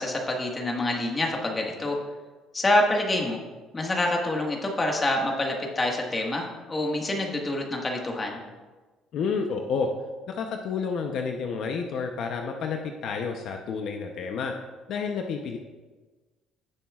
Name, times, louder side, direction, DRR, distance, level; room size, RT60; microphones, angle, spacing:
voice 1, 0.0-2.0 2.5-3.4 3.7-8.4, left 1 dB, 20° left, 0 dB, 1.6 m, -26 dB
voice 2, 9.1-9.9 10.3-14.5 14.9-15.6, left 5 dB, 60° left, 4 dB, 0.7 m, -30 dB
16.0 x 7.2 x 2.4 m, 1.3 s
cardioid pair, 130°, 0 cm